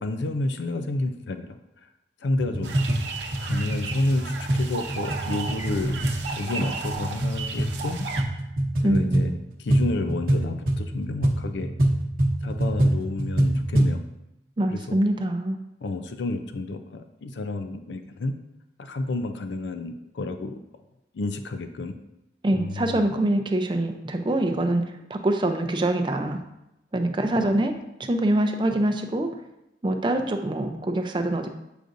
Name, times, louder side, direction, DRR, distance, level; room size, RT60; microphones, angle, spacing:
voice 1, 0.0-1.9 2.2-2.8 3.4-6.1 6.3-8.1 8.8-11.7 12.4-14.0 14.7-15.0 15.8-18.3 18.8-20.6 21.1-22.0 22.5-23.1, left 2 dB, 85° left, 8 dB, 0.5 m, -30 dB
sound 1, 2.3-14.0, right 1 dB, 55° right, 0.9 m, -25 dB
sound 2, 2.6-8.2, right 4 dB, 85° right, 0.8 m, -35 dB
voice 2, 8.8-9.3 14.6-15.6 22.4-24.8 25.1-26.4 26.9-27.7 28.0-29.3 29.8-31.5, right 1 dB, 25° right, 5 dB, 0.5 m, -24 dB
7.9 x 5.0 x 2.6 m, 0.89 s
head